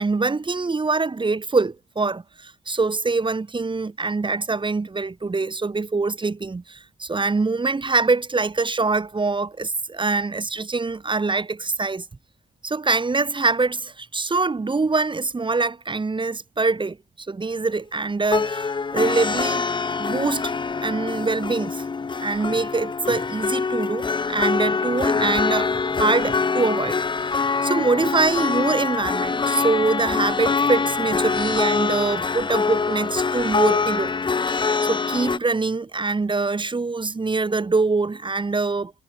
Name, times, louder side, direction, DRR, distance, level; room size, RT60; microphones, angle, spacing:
voice 1, 0.0-12.1 12.6-19.7 20.0-20.5 20.8-21.9 22.2-34.1 34.5-38.9, right 3 dB, 25° right, 2.5 m, -24 dB
sound 1, 18.2-35.4, left 4 dB, 25° left, 0.7 m, -24 dB
cardioid pair, 90°, 20 cm